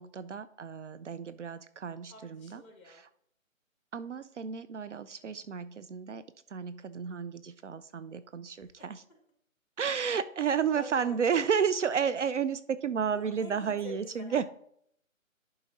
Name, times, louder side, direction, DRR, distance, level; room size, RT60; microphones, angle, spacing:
voice 1, 0.0-3.1 3.9-6.2 6.5-9.0 9.8-14.4, right 7 dB, 60° right, 13 dB, 0.5 m, -32 dB
voice 2, 2.1-3.0 8.6-8.7 10.8-11.4 13.1-14.5, left 1 dB, 25° left, 1 dB, 2.0 m, -46 dB
11.0 x 3.9 x 3.9 m, 0.67 s
hypercardioid pair, 160°, 40 cm